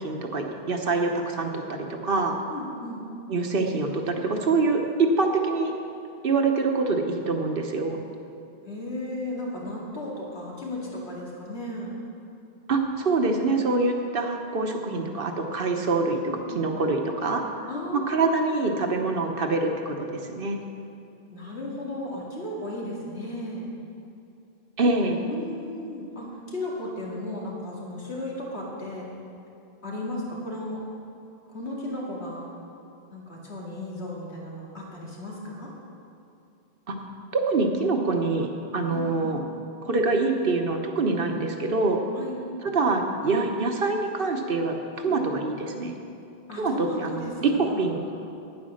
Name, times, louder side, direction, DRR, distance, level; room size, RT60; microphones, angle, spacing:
voice 1, 0.0-2.4 3.3-5.7 6.2-8.0 12.7-16.2 16.5-17.4 17.9-20.6 24.8-25.2 36.9-37.0 37.3-39.4 39.8-42.0 42.6-44.8 45.0-46.0 46.6-48.0, right 3 dB, 60° right, 3 dB, 1.1 m, -25 dB
voice 2, 2.5-3.0 8.6-11.9 16.2-16.6 17.7-18.2 21.3-23.7 25.3-29.1 29.8-30.8 31.5-32.5 33.1-35.7 38.9-39.3 42.1-42.4 43.2-43.4 45.0-45.2 46.5-47.9, left 1 dB, 90° left, -4 dB, 2.5 m, -35 dB
9.6 x 9.4 x 6.4 m, 2.6 s
omnidirectional pair, 1.1 m